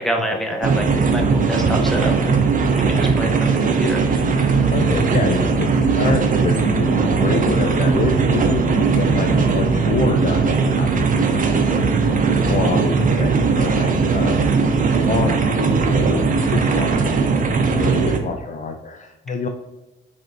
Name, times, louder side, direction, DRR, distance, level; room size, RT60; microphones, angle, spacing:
voice 1, 0.0-2.4 2.7-4.7, equal, ahead, 2 dB, 0.7 m, -27 dB
sound 1, 0.6-18.2, right 4 dB, 45° right, 0.6 m, -18 dB
voice 2, 4.4-14.4 15.1-16.2 16.5-19.5, left 4 dB, 40° left, 4 dB, 0.4 m, -27 dB
4.2 x 3.3 x 2.5 m, 1.0 s
cardioid pair, 90°, 20 cm